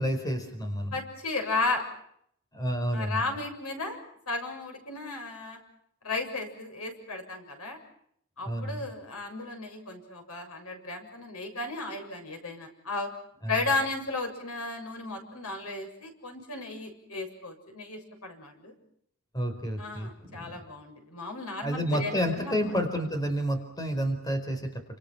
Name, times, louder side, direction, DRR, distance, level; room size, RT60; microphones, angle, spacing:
voice 1, 0.0-0.9 2.5-3.2 8.4-8.9 13.4-13.6 19.3-20.6 21.6-24.8, equal, 15° left, 6 dB, 4.9 m, -30 dB
voice 2, 0.9-1.8 2.9-4.0 4.3-5.6 6.0-7.8 8.4-13.1 13.5-18.7 19.8-22.6, left 3 dB, 85° left, 4 dB, 7.1 m, -34 dB
29.0 x 27.0 x 6.0 m, 0.70 s
head